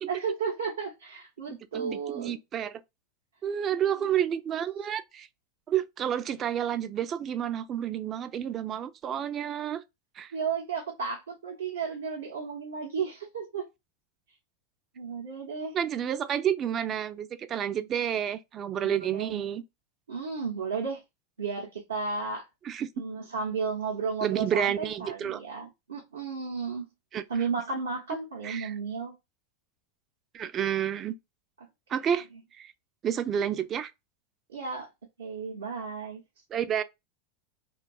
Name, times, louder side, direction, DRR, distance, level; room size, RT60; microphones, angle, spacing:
voice 1, 0.1-2.4 3.7-4.1 10.3-13.7 15.0-15.8 18.8-19.4 20.1-21.0 21.4-22.5 23.0-26.8 27.3-29.1 34.5-34.9 35.2-36.2, right 5 dB, 85° right, 0.7 m, -33 dB
voice 2, 1.5-2.8 3.4-5.3 5.7-9.8 10.2-10.3 15.7-19.6 22.7-22.9 24.2-25.4 27.1-27.2 28.4-28.7 30.3-31.1 31.9-32.3 32.6-32.7 33.0-33.9 36.5-36.8, right 9 dB, 35° right, 0.3 m, -30 dB
2.5 x 2.3 x 2.2 m
hypercardioid pair, 95°, 0 cm